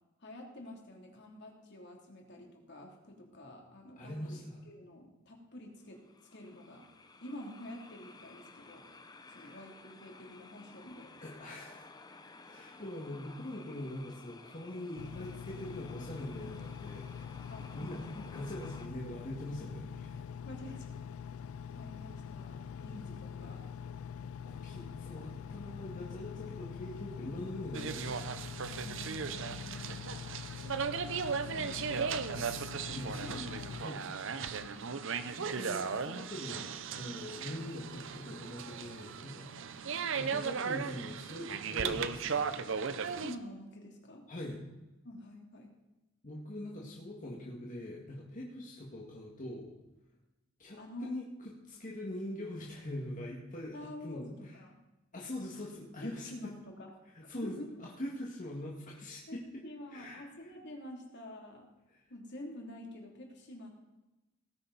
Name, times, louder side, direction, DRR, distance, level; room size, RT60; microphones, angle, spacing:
voice 1, 0.2-6.0 6.3-6.8 7.2-8.8 9.1-11.1 17.5-18.4 20.4-21.2 21.7-23.6 26.4-26.5 28.7-30.0 31.4-32.5 32.9-34.2 34.5-34.8 39.7-39.9 43.2-44.2 45.0-45.7 50.8-51.1 53.7-54.7 56.0-56.9 57.4-57.7 59.3-61.7 62.1-63.7, left 1 dB, 60° left, 0 dB, 3.0 m, -48 dB
voice 2, 4.0-4.6 9.2-9.6 11.2-11.8 12.4-20.2 24.4-28.3 31.2-32.1 32.9-33.4 33.8-34.0 35.3-39.6 40.1-43.1 44.3-44.6 46.2-49.7 50.6-54.6 55.1-56.5 57.1-59.6 59.9-60.5 61.9-62.0, left 1 dB, 40° left, -3 dB, 2.0 m, -43 dB
sound 1, 5.8-18.9, left 3 dB, 20° left, 0.7 m, -55 dB
Engine, 15.0-33.8, left 7 dB, 85° left, 0.3 m, -44 dB
sound 2, 27.7-43.3, right 6 dB, 65° right, 0.7 m, -37 dB
18.5 x 9.9 x 4.1 m, 1.0 s
head